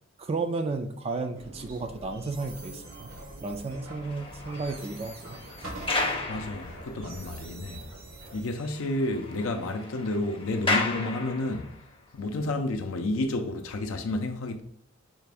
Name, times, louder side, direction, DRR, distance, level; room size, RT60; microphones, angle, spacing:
voice 1, 0.2-3.1 3.4-5.4, right 3 dB, 30° right, 0.3 m, -33 dB
sound 1, 1.3-8.4, right 1 dB, 80° right, 1.2 m, -45 dB
sound 2, 1.8-9.1, right 4 dB, 45° right, 0.7 m, -52 dB
sound 3, 3.7-7.2 7.7-7.8 8.2-8.3 8.6-11.8, left 3 dB, 25° left, 0.7 m, -34 dB
voice 2, 6.3-7.8 8.3-11.7 12.1-14.6, left 2 dB, 75° left, 0.5 m, -30 dB
4.6 x 2.5 x 3.4 m
head